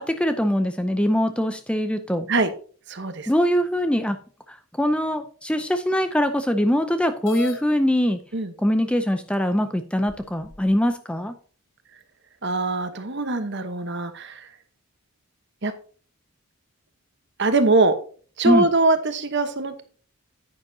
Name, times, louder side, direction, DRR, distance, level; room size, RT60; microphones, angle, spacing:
voice 1, 0.0-2.3 3.3-4.2 4.5-8.2 8.6-11.4 18.4-18.7, equal, 5° left, 9 dB, 0.5 m, -22 dB
voice 2, 2.9-3.3 8.3-8.5 12.4-14.5 15.6-15.7 17.4-17.9 18.4-19.8, right 3 dB, 50° right, 9 dB, 1.1 m, -22 dB
sound 1, 7.2-7.6 8.6-8.7 9.3-9.4 10.1-10.8, left 4 dB, 60° left, 1.1 m, -37 dB
10.0 x 9.0 x 2.8 m, 0.41 s
head